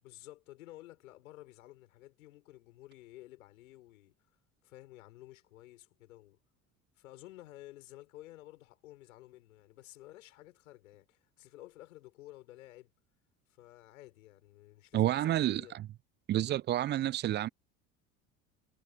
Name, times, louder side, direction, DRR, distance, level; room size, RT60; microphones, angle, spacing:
voice 1, 0.0-4.1 4.6-6.4 7.0-12.9 13.5-15.8, left 16 dB, 70° left, 5.5 m, -53 dB
voice 2, 14.9-15.9 16.3-17.5, right 13 dB, 25° right, 0.4 m, -29 dB
figure-of-eight pair, 65°, 43 cm